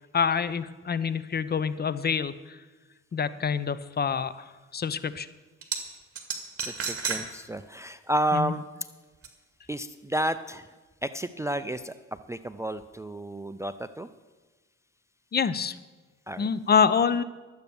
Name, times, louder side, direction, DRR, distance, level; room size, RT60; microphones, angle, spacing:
voice 1, 0.1-2.6 3.1-4.5 4.7-5.3 8.3-8.5 15.3-15.8 16.4-17.2, left 6 dB, 35° left, 15 dB, 0.6 m, -26 dB
sound 1, 5.6-5.8 6.2-7.2 7.6-7.7 9.2-9.3, right 5 dB, 50° right, 2.1 m, -31 dB
voice 2, 6.6-8.6 9.7-10.8 11.0-11.9 12.3-14.1 16.3-16.5, right 1 dB, 10° right, 12 dB, 0.4 m, -31 dB
12.0 x 8.1 x 7.0 m, 1.3 s
cardioid pair, 90°, 30 cm